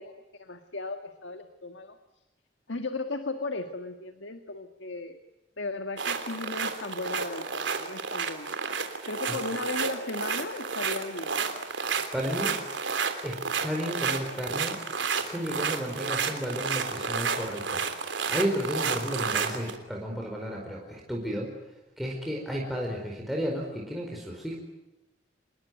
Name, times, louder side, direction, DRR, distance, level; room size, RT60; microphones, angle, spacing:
voice 1, 0.0-2.0 2.7-5.2 5.6-8.5 9.1-11.3, left 3 dB, 90° left, 7 dB, 1.7 m, -36 dB
sound 1, 6.0-19.8, right 5 dB, 90° right, 3.3 m, -31 dB
voice 2, 11.8-12.6 13.2-14.8 15.2-21.5 22.0-24.6, equal, ahead, -2 dB, 4.6 m, -33 dB
27.0 x 21.0 x 9.2 m, 0.99 s
head